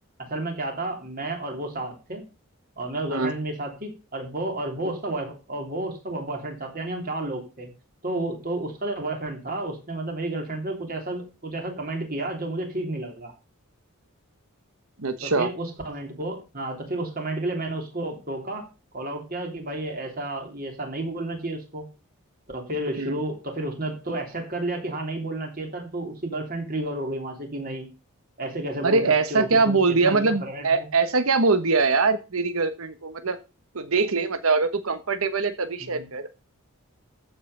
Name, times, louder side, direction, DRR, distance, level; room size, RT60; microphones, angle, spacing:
voice 1, 0.2-2.2 2.8-7.7 8.0-13.3 15.2-18.7 18.9-21.9 22.5-27.9 28.4-29.0 29.3-30.9 35.8-36.1, right 2 dB, 40° right, 3 dB, 3.2 m, -31 dB
voice 2, 15.0-15.5 23.0-23.2 28.8-33.4 33.7-36.3, right 4 dB, 70° right, 9 dB, 1.1 m, -23 dB
14.5 x 5.6 x 6.6 m, 0.31 s
head